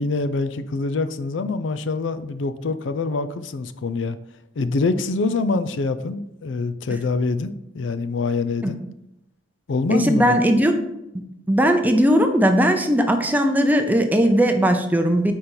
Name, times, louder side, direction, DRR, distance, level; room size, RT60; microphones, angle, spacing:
voice 1, 0.0-4.2 4.6-8.8 9.7-10.4, left 3 dB, 80° left, 12 dB, 0.4 m, -25 dB
voice 2, 9.9-10.8 11.5-15.3, equal, 10° right, 5 dB, 0.6 m, -18 dB
5.4 x 5.1 x 4.4 m, 0.85 s
head